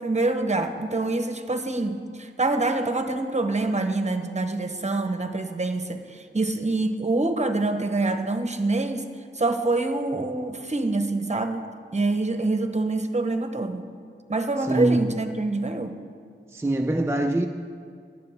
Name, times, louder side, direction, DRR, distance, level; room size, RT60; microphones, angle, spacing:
voice 1, 0.0-9.1 9.3-11.6 11.9-13.9 14.3-15.9, right 2 dB, 35° right, 7 dB, 0.9 m, -26 dB
voice 2, 14.6-15.1 16.5-17.5, right 1 dB, 10° right, 3 dB, 0.4 m, -23 dB
17.5 x 10.5 x 3.6 m, 2.3 s
wide cardioid pair, 80°, 20 cm